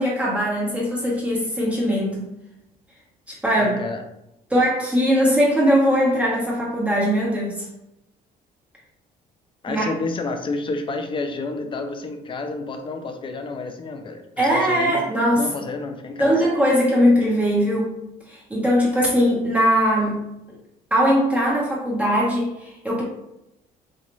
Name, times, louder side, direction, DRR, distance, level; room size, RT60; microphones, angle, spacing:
voice 1, 0.0-2.3 3.3-3.8 4.5-7.6 9.7-9.9 14.4-15.5 16.2-18.0 18.3-20.2 20.9-23.0, equal, 10° right, -7 dB, 1.1 m, -20 dB
voice 2, 3.5-4.0 9.6-15.0 15.3-16.4, left 3 dB, 30° left, 6 dB, 0.5 m, -30 dB
3.9 x 2.4 x 3.1 m, 0.88 s
cardioid pair, 110°, 17 cm